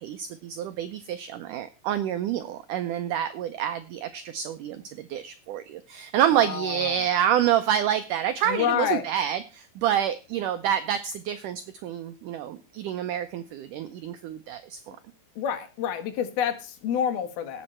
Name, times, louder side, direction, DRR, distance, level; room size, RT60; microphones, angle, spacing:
voice 1, 0.0-15.0, right 10 dB, 85° right, 10 dB, 1.8 m, -28 dB
voice 2, 6.3-7.0 8.5-9.1 15.4-17.6, left 9 dB, 75° left, 7 dB, 3.3 m, -28 dB
18.0 x 6.3 x 4.3 m, 0.31 s
omnidirectional pair, 4.6 m